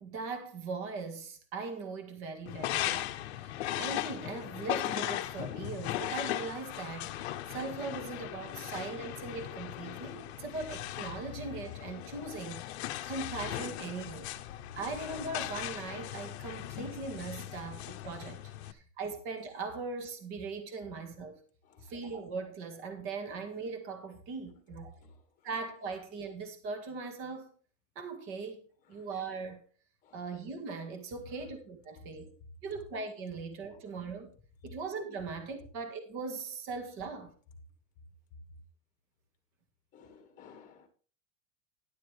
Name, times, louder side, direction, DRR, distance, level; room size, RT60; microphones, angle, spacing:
voice 1, 0.0-7.1 7.5-14.3 14.8-21.4 21.8-25.0 25.4-27.5 28.0-28.6 28.9-29.6 30.1-32.3 32.6-34.3 34.6-37.3, right 4 dB, 30° right, 1.9 m, -40 dB
sound 1, 2.5-18.7, left 13 dB, 55° left, 0.9 m, -38 dB
voice 2, 39.9-40.9, left 5 dB, 20° left, 1.5 m, -56 dB
12.0 x 11.0 x 3.4 m
supercardioid pair, 170°, 40 cm